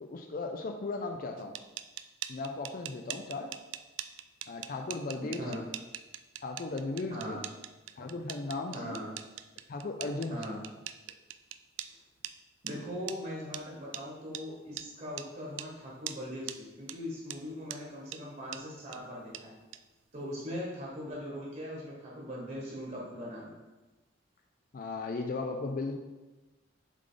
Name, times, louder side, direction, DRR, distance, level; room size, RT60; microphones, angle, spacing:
voice 1, 0.0-1.5 2.3-3.5 4.5-5.7 6.4-7.5 8.0-9.0 9.7-10.6 24.7-26.0, left 3 dB, 45° left, 4 dB, 0.4 m, -36 dB
sound 1, 1.4-11.9 12.2-12.3 12.7-12.8 13.1-13.2 13.5-13.6 13.9-14.0 14.3-14.4 14.8-14.9 15.2-15.3 15.6-15.7 16.1-16.2 16.5-16.6 16.9-17.0 17.3-17.4 17.7-17.8 18.1-18.2 18.5-18.6 18.9-19.0 19.3-19.4 19.7-19.8, right 12 dB, 80° right, 0.3 m, -40 dB
voice 2, 5.2-5.6 7.1-7.4 8.7-9.1 10.3-10.6 12.6-19.5 20.1-23.6, equal, 40° right, -4 dB, 1.3 m, -40 dB
7.3 x 3.4 x 3.8 m, 1.2 s
head